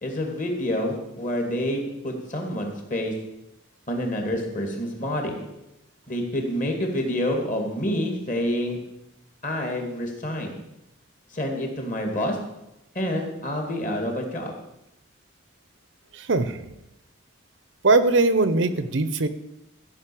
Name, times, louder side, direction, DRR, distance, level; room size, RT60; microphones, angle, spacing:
voice 1, 0.0-3.1 3.9-5.4 6.1-8.8 9.4-10.5 11.3-12.4 12.9-14.5, left 1 dB, 40° left, 2 dB, 2.4 m, -28 dB
voice 2, 16.1-16.7 17.8-19.3, right 3 dB, 65° right, 13 dB, 0.7 m, -21 dB
14.5 x 5.4 x 8.6 m, 0.90 s
head